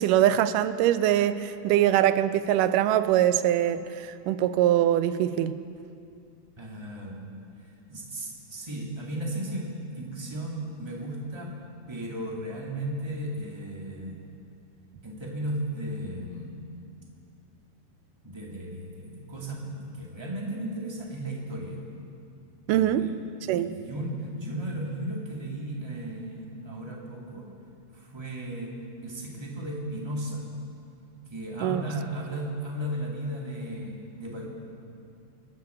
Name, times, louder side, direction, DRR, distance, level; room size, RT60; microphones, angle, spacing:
voice 1, 0.0-5.6 22.7-23.2 23.5-23.9 31.6-31.8, right 12 dB, 85° right, 13 dB, 2.2 m, -23 dB
voice 2, 6.6-7.2 7.9-11.5 11.9-14.2 15.0-16.6 18.2-21.8 22.7-23.1 23.5-27.5 27.9-28.8 29.0-30.4 31.3-34.5, right 1 dB, 10° right, -2 dB, 1.4 m, -35 dB
24.0 x 8.3 x 6.8 m, 2.6 s
omnidirectional pair, 3.7 m